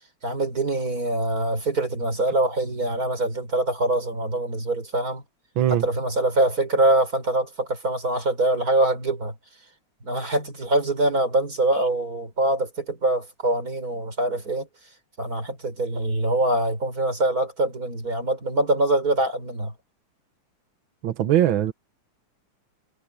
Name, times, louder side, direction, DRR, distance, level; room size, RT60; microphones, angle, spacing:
voice 1, 0.2-5.2 5.7-9.3 10.0-14.7 15.2-19.7, right 1 dB, 30° right, 5.6 m, -24 dB
voice 2, 21.0-21.7, right 11 dB, 60° right, 1.4 m, -20 dB
omnidirectional pair, 3.4 m